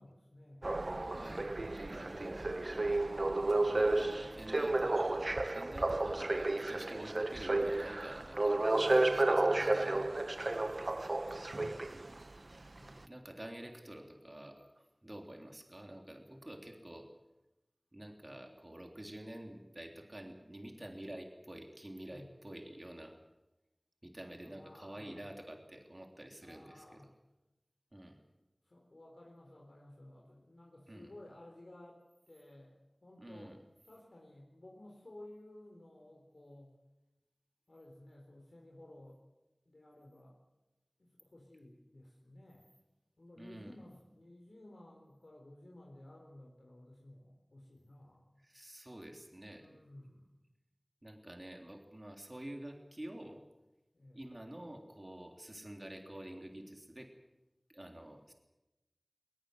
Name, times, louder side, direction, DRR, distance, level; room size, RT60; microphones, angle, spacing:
voice 1, 0.0-0.7 8.7-10.1 10.4-11.4 12.7-13.1 22.1-22.3 24.4-25.3 26.4-27.1 28.6-32.7 33.0-33.6 33.8-36.7 37.7-39.2 39.7-40.4 41.0-42.7 43.2-48.4 49.5-50.4 53.9-54.2, left 1 dB, 75° left, -1 dB, 4.0 m, -55 dB
sound 1, 0.6-12.2 12.9-13.0, right 2 dB, 65° right, 0.8 m, -32 dB
voice 2, 0.8-1.5 1.8-2.5 3.7-5.1 5.4-10.1 11.9-12.2 13.0-17.1 17.9-23.2 24.0-26.8 27.9-28.2 30.9-31.1 33.2-33.6 43.4-43.7 48.4-49.8 51.0-53.4 54.1-57.1 57.7-58.3, right 1 dB, 35° right, 3 dB, 3.3 m, -48 dB
21.0 x 21.0 x 7.9 m, 0.98 s
wide cardioid pair, 45°, 0 cm